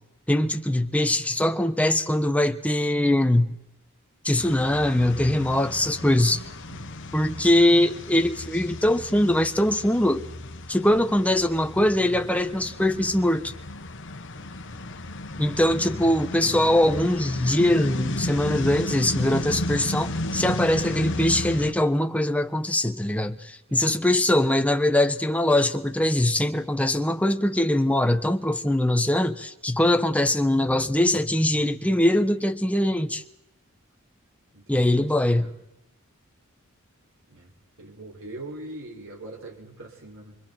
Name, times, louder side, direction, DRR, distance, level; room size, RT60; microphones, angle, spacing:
voice 1, 0.3-3.5 4.2-6.4 7.1-10.3 10.7-13.5 15.4-33.2 34.7-35.5, left 1 dB, 5° left, 1.2 m, -22 dB
sound 1, 4.4-21.7, left 1 dB, 60° left, 1.4 m, -34 dB
voice 2, 6.7-7.0 14.3-15.2 23.7-24.1 34.5-35.5 37.3-37.5 37.8-40.4, right 1 dB, 65° right, 6.2 m, -43 dB
28.5 x 25.0 x 4.5 m
head